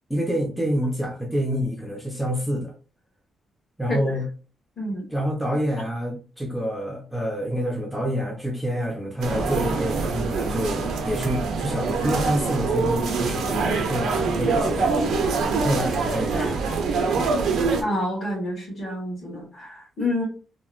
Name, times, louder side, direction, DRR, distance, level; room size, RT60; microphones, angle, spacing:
voice 1, 0.1-2.7 3.8-4.3 5.1-16.6, equal, 5° right, -1 dB, 0.5 m, -27 dB
sound 1, 9.2-17.8, right 4 dB, 85° right, 0.6 m, -24 dB
voice 2, 17.8-20.2, left 1 dB, 35° left, -7 dB, 1.2 m, -28 dB
2.9 x 2.1 x 2.4 m, 0.37 s
wide cardioid pair, 155°, 0 cm